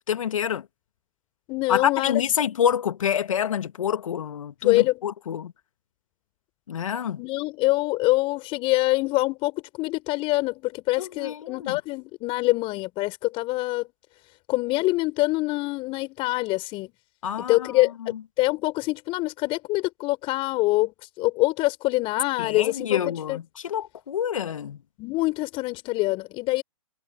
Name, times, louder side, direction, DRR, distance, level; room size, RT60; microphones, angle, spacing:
voice 1, 0.1-0.7 1.7-5.5 6.7-7.2 11.0-11.8 17.2-17.7 22.4-24.8, left 9 dB, 65° left, 2.0 m, -27 dB
voice 2, 1.5-2.2 4.6-5.0 7.2-13.9 14.5-16.9 17.5-20.9 21.2-23.4 25.0-26.6, left 21 dB, 30° left, 4.3 m, -25 dB
hypercardioid pair, 125°, 18 cm